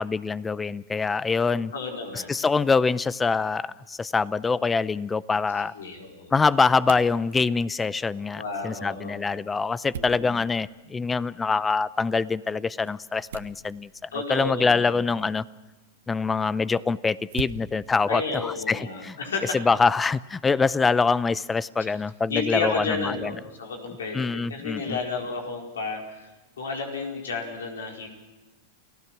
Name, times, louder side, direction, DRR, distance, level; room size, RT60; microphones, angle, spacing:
voice 1, 0.0-1.7 2.3-5.7 6.3-15.4 16.1-19.2 19.5-23.2 24.1-25.0, left 4 dB, 15° left, 19 dB, 0.6 m, -24 dB
voice 2, 1.7-2.4 5.7-6.3 8.3-9.2 9.9-10.3 14.1-15.0 18.1-19.6 21.8-21.9 22.3-26.3 26.6-28.1, left 4 dB, 90° left, 1 dB, 4.7 m, -32 dB
sound 1, 4.3-19.2, right 8 dB, 80° right, 1.3 m, -46 dB
30.0 x 16.0 x 6.1 m, 1.1 s
hypercardioid pair, 115°, 0 cm